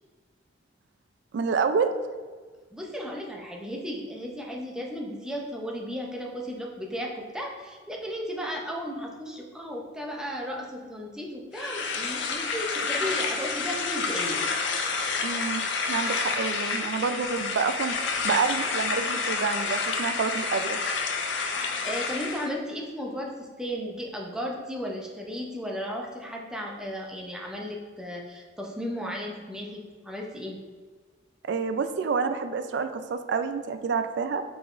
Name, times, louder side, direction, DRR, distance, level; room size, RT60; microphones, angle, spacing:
voice 1, 1.3-1.9 15.2-15.6 15.9-18.0 18.2-20.8 31.5-34.4, right 5 dB, 60° right, 9 dB, 0.3 m, -28 dB
voice 2, 2.7-14.4 21.5-30.6, equal, 5° right, -1 dB, 0.5 m, -35 dB
sound 1, 11.5-22.5, left 4 dB, 65° left, 0.4 m, -29 dB
5.0 x 3.6 x 2.4 m, 1.5 s
head